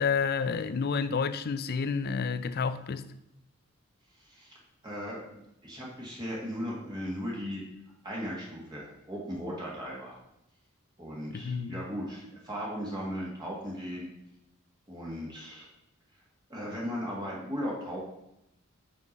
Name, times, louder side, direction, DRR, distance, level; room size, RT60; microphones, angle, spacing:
voice 1, 0.0-3.1 11.3-11.8, left 5 dB, 45° left, 0.4 m, -30 dB
voice 2, 4.2-4.6 4.8-7.6 8.0-10.1 11.0-14.1 14.9-15.7 16.5-18.0, equal, 20° right, 1.7 m, -37 dB
5.9 x 5.8 x 5.2 m
head